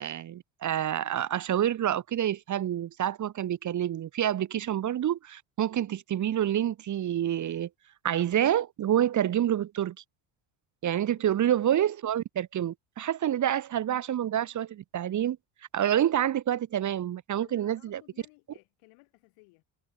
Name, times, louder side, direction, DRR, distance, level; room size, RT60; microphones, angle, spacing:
voice 1, 0.0-7.7 8.0-10.0 10.8-15.4 15.7-18.0, right 11 dB, 40° right, 0.7 m, -28 dB
voice 2, 11.1-11.5 13.3-13.5 17.4-19.6, left 27 dB, 90° left, 6.0 m, -59 dB
cardioid pair, 90°, 48 cm